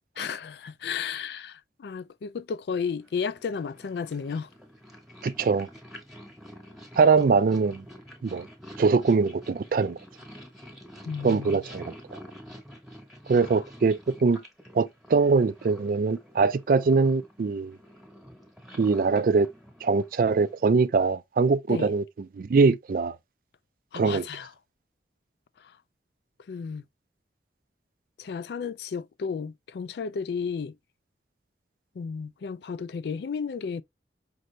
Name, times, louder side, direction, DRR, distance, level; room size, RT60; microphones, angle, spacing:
voice 1, 0.2-4.5 11.1-11.6 13.3-13.5 21.7-21.9 23.9-24.5 25.6-25.7 26.5-26.8 28.2-30.8 32.0-33.8, left 6 dB, 65° left, 0.3 m, -33 dB
Purr, 3.0-20.7, equal, ahead, 1.0 m, -48 dB
voice 2, 5.2-5.7 7.0-7.8 8.2-8.5 8.8-10.0 11.2-11.9 13.3-14.4 14.7-17.8 18.8-19.5 19.8-22.0 22.4-23.2 23.9-24.3, right 4 dB, 50° right, 0.3 m, -22 dB
5.3 x 2.5 x 3.1 m
head